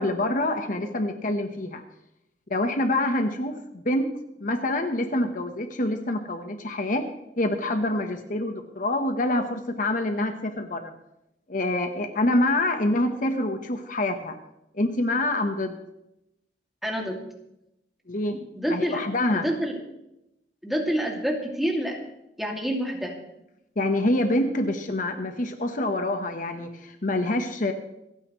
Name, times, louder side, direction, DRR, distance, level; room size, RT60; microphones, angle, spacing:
voice 1, 0.0-1.8 2.5-4.1 4.4-7.1 7.4-10.9 11.5-14.4 14.7-15.8 18.1-18.4 18.7-19.4 23.8-27.7, left 1 dB, 50° left, 6 dB, 1.1 m, -26 dB
voice 2, 16.8-17.2 18.6-19.0 19.3-19.8 20.6-22.0 22.4-23.1, equal, ahead, 0 dB, 2.4 m, -27 dB
27.5 x 9.6 x 3.2 m, 0.86 s
head